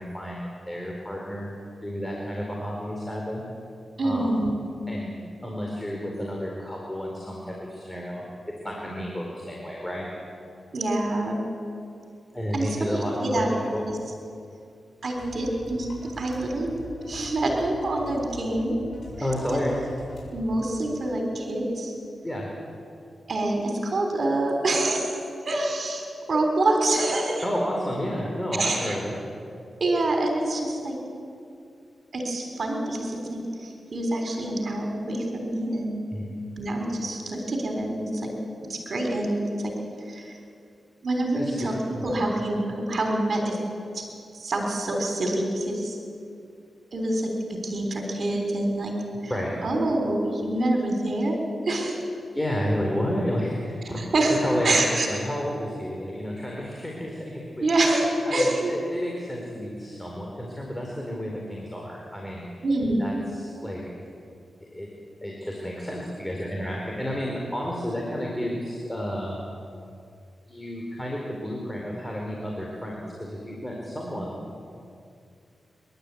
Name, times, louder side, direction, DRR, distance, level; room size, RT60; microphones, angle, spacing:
voice 1, 0.0-1.5 1.8-3.4 4.0-4.3 4.9-8.3 8.6-10.1 12.3-13.8 19.2-19.7 22.2-22.5 27.4-29.1 36.1-36.3 41.3-42.0 49.3-49.5 52.3-54.0 54.4-57.6 58.3-62.5 63.0-63.8 64.7-64.9 65.2-69.4 70.5-74.5, equal, 15° left, -1 dB, 4.2 m, -31 dB
voice 2, 4.0-4.5 10.7-11.4 12.5-13.5 13.9-14.0 15.0-15.9 16.2-16.7 17.1-18.8 20.3-21.9 23.3-25.1 25.4-27.4 28.6-29.0 29.8-31.0 32.1-36.0 36.6-38.3 38.7-39.4 39.6-39.7 40.1-40.4 41.0-41.7 42.0-43.6 43.9-44.0 44.3-46.0 46.9-48.9 49.6-51.4 51.7-52.0 54.0-54.4 54.6-55.1 57.6-58.7 62.6-63.1, right 2 dB, 60° right, 2 dB, 3.6 m, -26 dB
sound 1, 15.1-20.6, left 2 dB, 60° left, 6.8 m, -43 dB
28.0 x 12.0 x 8.3 m, 2.4 s
cardioid pair, 55°, 0 cm